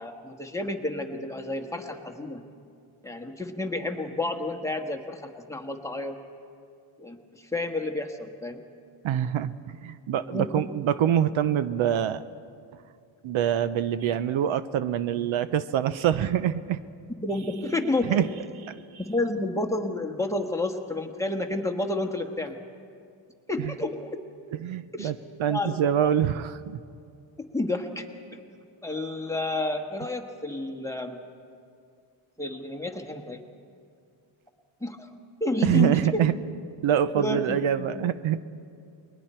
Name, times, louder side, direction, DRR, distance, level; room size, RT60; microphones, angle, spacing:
voice 1, 0.0-2.4 3.0-6.2 7.0-8.6 10.3-10.7 17.2-18.2 18.9-22.6 23.5-24.2 24.9-25.1 25.5-25.7 26.0-26.1 27.5-28.0 28.8-31.2 32.4-33.4 34.8-35.1 35.4-36.2 37.1-37.9, left 2 dB, 5° left, 3 dB, 1.4 m, -30 dB
voice 2, 9.0-12.2 13.2-16.8 18.1-18.3 18.7-18.8 23.6-23.7 24.6-26.8 35.6-36.3 36.8-38.4, right 9 dB, 75° right, 13 dB, 0.8 m, -25 dB
30.0 x 21.5 x 4.4 m, 2.3 s
cardioid pair, 120°, 48 cm